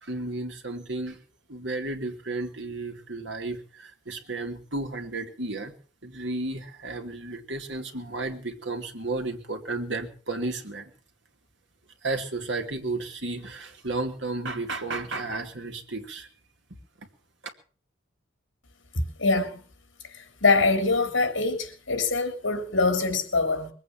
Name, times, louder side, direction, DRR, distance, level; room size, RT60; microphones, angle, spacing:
voice 1, 0.0-1.2 1.5-5.7 6.0-10.9 12.0-16.3, right 2 dB, 65° right, 2.5 m, -33 dB
voice 2, 18.9-19.6 20.1-23.7, left 3 dB, 70° left, 3.6 m, -24 dB
22.5 x 8.6 x 7.4 m
head